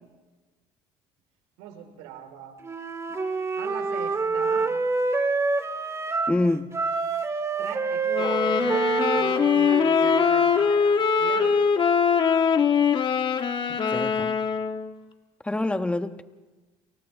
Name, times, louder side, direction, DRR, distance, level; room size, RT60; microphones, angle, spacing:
voice 1, 1.6-2.6 3.6-4.7 7.6-11.6, right 10 dB, 85° right, 4 dB, 4.7 m, -41 dB
Wind instrument woodwind instrument, 2.6-6.4 6.7-10.7, right 3 dB, 25° right, 2.1 m, -27 dB
voice 2, 6.3-6.7 13.9-14.4 15.4-16.2, left 2 dB, 10° left, 9 dB, 1.3 m, -26 dB
sound 1, 8.1-14.9, left 6 dB, 45° left, 2.0 m, -22 dB
29.5 x 28.5 x 3.7 m, 1.2 s
supercardioid pair, 90°, 12 cm